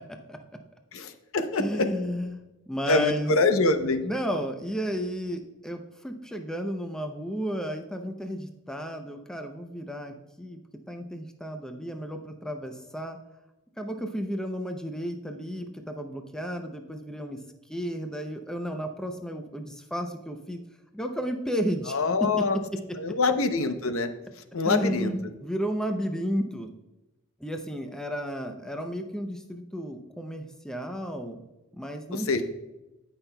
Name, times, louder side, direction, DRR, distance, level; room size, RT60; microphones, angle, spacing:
voice 1, 0.9-1.9 2.9-4.0 21.9-22.6 23.0-24.1 24.5-25.1 32.1-32.4, left 3 dB, 65° left, 8 dB, 0.7 m, -25 dB
voice 2, 1.6-3.3 4.0-10.6 10.9-13.2 13.8-17.4 17.7-20.6 20.9-22.8 24.6-26.7 27.4-31.4 31.7-32.4, equal, 5° left, 4 dB, 0.5 m, -33 dB
17.0 x 5.7 x 2.2 m, 1.0 s
head